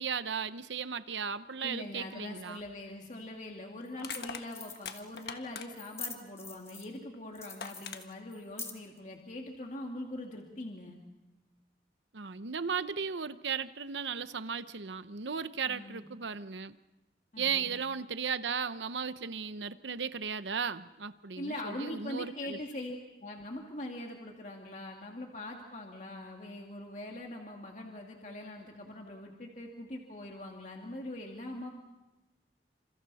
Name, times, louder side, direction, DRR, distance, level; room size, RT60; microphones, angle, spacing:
voice 1, 0.0-2.6 12.1-16.8 17.4-22.6, right 6 dB, 85° right, 13 dB, 0.9 m, -36 dB
voice 2, 1.6-11.0 15.6-16.1 17.3-17.7 21.4-31.7, left 1 dB, 40° left, 1 dB, 2.3 m, -42 dB
Crushing, 2.6-2.8 4.0-5.9 7.1-7.2 7.6-8.0, left 6 dB, 60° left, 1.4 m, -42 dB
sound 1, 3.0-3.1 3.9-4.2 4.5-5.3 5.7-7.0 7.3-9.0, left 4 dB, 15° left, 1.9 m, -44 dB
29.0 x 27.5 x 4.2 m, 1.0 s
head